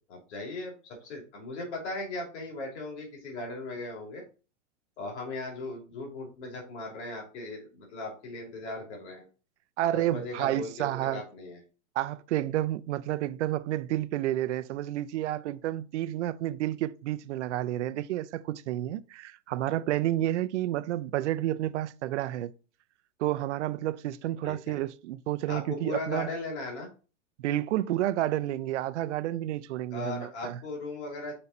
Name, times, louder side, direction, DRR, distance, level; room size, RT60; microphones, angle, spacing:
voice 1, 0.1-4.2 5.0-9.2 9.9-11.6 24.4-24.8 25.5-26.9 29.9-31.3, left 2 dB, 65° left, 2.9 m, -38 dB
voice 2, 9.8-11.2 12.0-22.5 23.2-26.3 27.4-30.6, right 14 dB, 70° right, 0.6 m, -30 dB
5.4 x 4.3 x 4.1 m
supercardioid pair, 145°, 37 cm